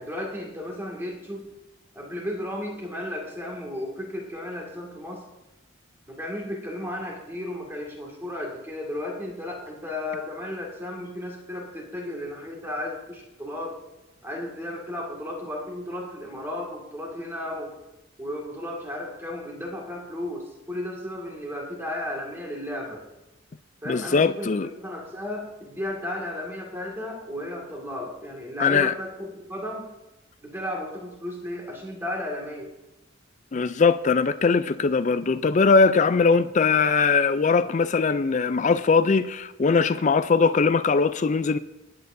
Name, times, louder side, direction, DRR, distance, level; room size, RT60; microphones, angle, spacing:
voice 1, 0.0-1.5 1.9-5.2 6.1-13.8 14.2-17.7 18.2-23.0 23.8-29.9 30.4-32.7, left 1 dB, 10° right, 2.0 m, -34 dB
voice 2, 23.9-24.7 28.6-28.9 33.5-41.6, left 4 dB, 35° left, 0.4 m, -21 dB
20.0 x 8.8 x 2.7 m
head